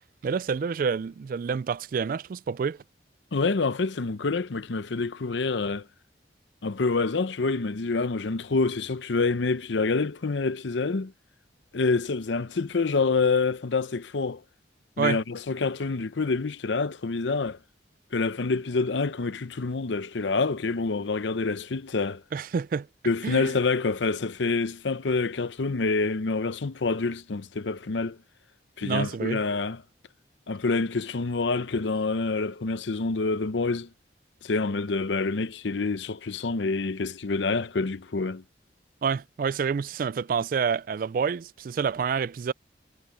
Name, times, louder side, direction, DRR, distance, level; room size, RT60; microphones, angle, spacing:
voice 1, 0.2-2.8 15.0-15.2 22.3-22.9 23.2-23.5 28.8-29.4 39.0-42.5, right 6 dB, 50° right, 0.3 m, -28 dB
voice 2, 3.3-5.9 6.6-11.1 11.7-14.4 15.0-17.6 18.1-22.2 23.0-28.2 28.8-29.8 30.5-33.9 34.4-38.4, left 3 dB, 80° left, 0.7 m, -27 dB
head